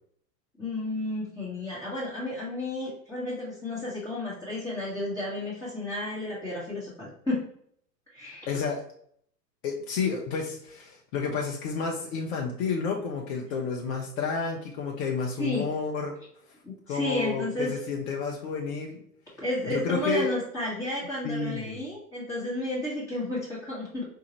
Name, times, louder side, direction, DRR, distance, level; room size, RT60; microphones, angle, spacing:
voice 1, 0.6-7.4 8.1-8.5 15.4-15.7 16.6-17.7 19.4-24.0, left 1 dB, 5° left, -11 dB, 1.3 m, -32 dB
voice 2, 8.5-8.8 9.6-16.1 16.9-19.0 19.7-20.3 21.2-21.8, left 5 dB, 45° left, 0 dB, 0.7 m, -30 dB
4.7 x 2.5 x 2.9 m, 0.63 s
hypercardioid pair, 100°, 50 cm